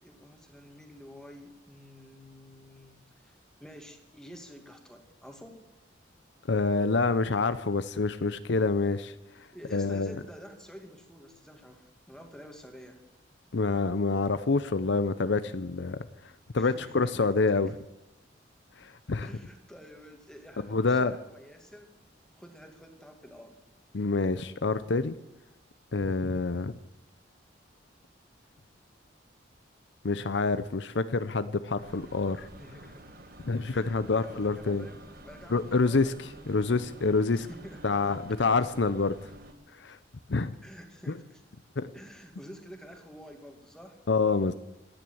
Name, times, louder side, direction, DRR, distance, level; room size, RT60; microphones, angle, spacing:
voice 1, 0.0-5.6 9.5-13.0 16.5-17.3 19.2-21.9 22.3-23.6 32.1-32.2 32.6-33.1 33.7-36.2 37.3-38.2 40.6-41.4 41.9-44.0, equal, 5° left, 3 dB, 2.2 m, -49 dB
voice 2, 6.5-10.2 13.5-17.7 18.8-19.3 20.7-21.1 23.9-25.1 25.9-26.7 30.0-32.5 33.5-34.9 35.5-37.5 37.8-39.2 39.7-40.0 40.3-40.5 41.8-41.9 44.1-44.5, left 3 dB, 70° left, 13 dB, 0.7 m, -27 dB
sound 1, 31.8-39.5, right 1 dB, 50° right, 1.6 m, -49 dB
16.5 x 10.5 x 7.9 m, 0.92 s
head